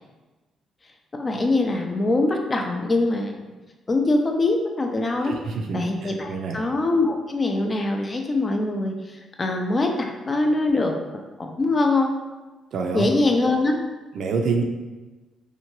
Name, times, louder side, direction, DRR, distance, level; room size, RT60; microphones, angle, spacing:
voice 1, 1.1-3.5 3.9-5.4 5.7-11.0 11.4-12.2 12.9-13.8, left 2 dB, 30° left, 3 dB, 0.4 m, -23 dB
voice 2, 5.2-6.6 12.7-13.1 14.1-14.6, right 4 dB, 70° right, 3 dB, 0.4 m, -27 dB
2.8 x 2.2 x 3.0 m, 1.2 s
cardioid pair, 90°, 0 cm